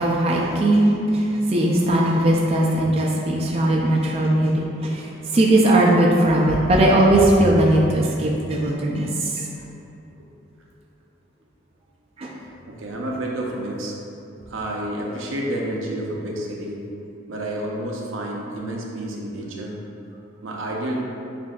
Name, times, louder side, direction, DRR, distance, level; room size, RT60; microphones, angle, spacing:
voice 1, 0.0-5.1 5.3-9.5 12.2-12.3, right 1 dB, 30° right, -3 dB, 0.4 m, -19 dB
voice 2, 12.6-14.0 14.5-16.8 17.3-19.8 20.4-21.0, right 1 dB, 85° right, -2 dB, 0.6 m, -29 dB
7.2 x 2.6 x 2.3 m, 2.7 s
head